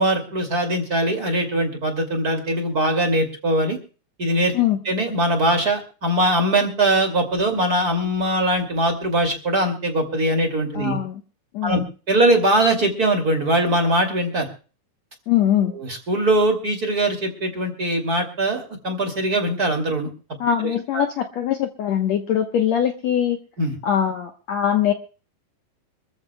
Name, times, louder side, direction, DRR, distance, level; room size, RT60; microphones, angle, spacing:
voice 1, 0.0-3.8 4.2-4.5 4.8-11.0 11.6-11.8 12.1-14.5 15.7-20.1 20.6-21.0 23.6-23.7, right 1 dB, 30° right, 4 dB, 2.5 m, -21 dB
voice 2, 10.7-11.2 11.5-11.9 15.3-15.7 20.4-23.4 23.8-24.9, left 10 dB, 65° left, 5 dB, 1.9 m, -22 dB
26.0 x 14.0 x 2.2 m, 0.37 s
omnidirectional pair, 4.0 m